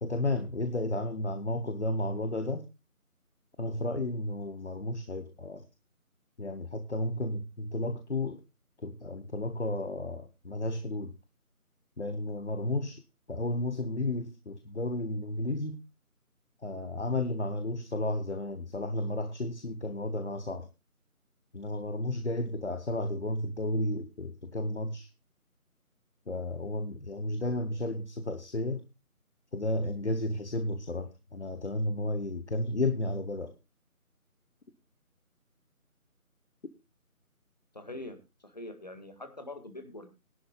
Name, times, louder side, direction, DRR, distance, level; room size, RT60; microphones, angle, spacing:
voice 1, 0.0-2.7 3.6-5.7 6.4-8.4 8.8-11.1 12.0-13.0 13.3-15.8 16.6-20.7 21.5-25.1 26.3-28.9 29.5-33.6, left 2 dB, 50° left, 10 dB, 1.0 m, -33 dB
voice 2, 37.7-40.1, left 2 dB, 30° left, 7 dB, 1.8 m, -44 dB
20.0 x 11.0 x 2.3 m, 0.25 s
figure-of-eight pair, 175°, 44 cm